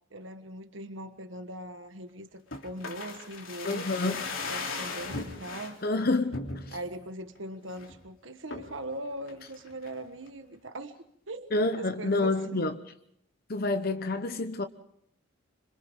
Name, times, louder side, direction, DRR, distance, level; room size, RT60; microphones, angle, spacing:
voice 1, 0.1-5.8 6.7-11.0 11.3-12.7, right 1 dB, 70° right, 1.4 m, -40 dB
sound 1, 2.5-5.8 6.3-6.9 7.4-7.5 7.7-8.0 8.5-8.8 9.3-10.0 10.3-10.4, left 3 dB, 80° left, 3.4 m, -37 dB
voice 2, 3.6-4.2 5.8-6.8 11.5-12.8 13.5-14.6, left 2 dB, 50° left, 1.0 m, -28 dB
26.5 x 26.0 x 3.8 m
head